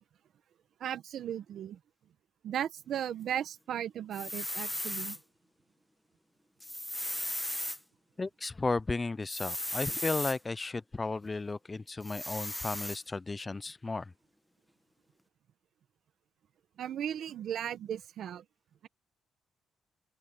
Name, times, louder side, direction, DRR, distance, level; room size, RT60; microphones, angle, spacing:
voice 1, 0.8-1.8 2.4-5.2 16.8-18.4, right 10 dB, 70° right, 1.2 m, -36 dB
sound 1, 4.1-5.2 6.6-7.8 9.3-10.4 12.0-13.0, left 1 dB, 5° left, 1.3 m, -36 dB
voice 2, 8.2-14.1, left 3 dB, 25° left, 0.5 m, -34 dB
open air
cardioid pair, 90°, 0 cm